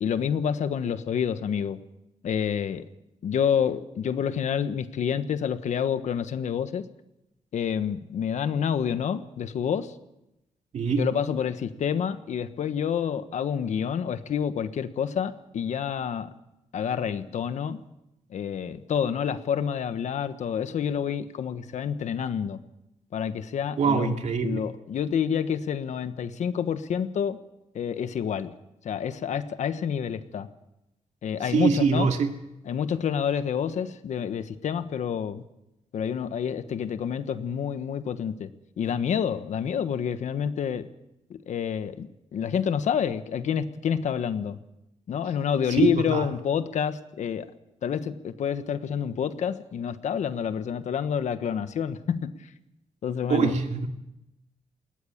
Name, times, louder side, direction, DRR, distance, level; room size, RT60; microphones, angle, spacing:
voice 1, 0.0-1.8 2.2-2.8 3.2-6.8 7.5-9.9 11.0-16.3 16.7-17.8 18.3-22.6 23.1-24.1 24.4-27.4 27.7-28.5 28.8-30.5 31.2-32.1 32.7-35.4 35.9-38.5 38.8-40.9 41.3-44.6 45.1-47.5 47.8-52.5 53.0-53.5, left 8 dB, 70° left, 11 dB, 1.3 m, -28 dB
voice 2, 10.7-11.0 23.8-24.6 31.4-32.3 45.7-46.2 53.3-53.9, right 5 dB, 70° right, 4 dB, 2.4 m, -24 dB
20.5 x 18.5 x 7.3 m, 0.91 s
wide cardioid pair, 135°, 13 cm